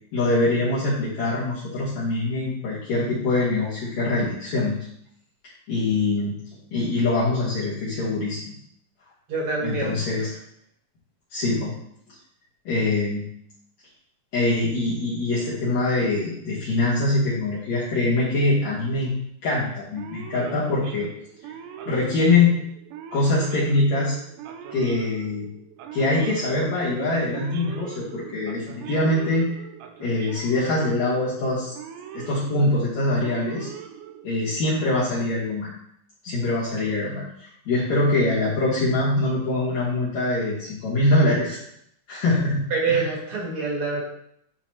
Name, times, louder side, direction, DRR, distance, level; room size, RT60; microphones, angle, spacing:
voice 1, 0.1-4.8 5.7-6.3 6.7-8.5 9.6-10.3 11.3-11.7 12.7-13.2 14.3-19.1 19.4-21.1 21.8-22.6 23.1-24.1 24.7-25.5 25.9-29.5 30.0-31.7 32.1-33.7 34.2-35.7 36.2-41.6 42.1-43.1, left 2 dB, 60° left, -9 dB, 2.6 m, -23 dB
voice 2, 9.3-10.0 42.7-44.0, right 4 dB, 50° right, -2 dB, 2.1 m, -25 dB
Male speech man speaking / Siren, 20.0-34.7, right 9 dB, 80° right, 2.1 m, -41 dB
10.5 x 3.9 x 3.0 m, 0.72 s
omnidirectional pair, 3.9 m